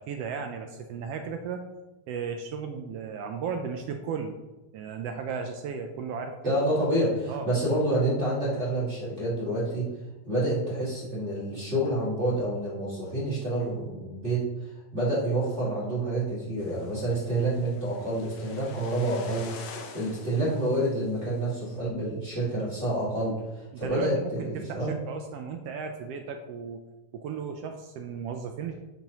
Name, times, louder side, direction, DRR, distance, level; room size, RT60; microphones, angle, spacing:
voice 1, 0.0-1.6 2.1-4.4 4.7-6.5 7.3-7.5 23.7-26.8 27.1-28.7, right 6 dB, 80° right, 5 dB, 1.4 m, -35 dB
voice 2, 6.4-9.9 10.2-14.4 14.9-19.5 19.9-24.9, right 1 dB, 25° right, -7 dB, 2.6 m, -28 dB
sound 1, 16.6-21.8, left 5 dB, 65° left, 1.7 m, -47 dB
11.5 x 7.2 x 3.0 m, 1.1 s
omnidirectional pair, 3.5 m